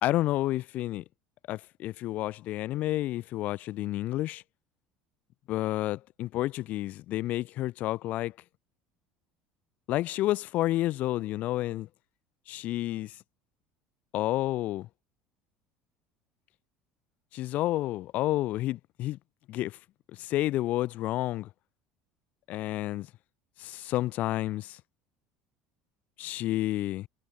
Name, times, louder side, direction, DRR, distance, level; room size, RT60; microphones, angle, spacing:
voice 1, 0.0-1.0 1.5-4.4 5.5-8.3 9.9-11.9 12.5-13.1 14.1-14.9 17.3-19.2 19.5-19.8 20.1-21.5 22.5-23.1 23.6-24.8 26.2-27.1, left 15 dB, 55° left, 2.5 m, -30 dB
cardioid pair, 135°, 3 cm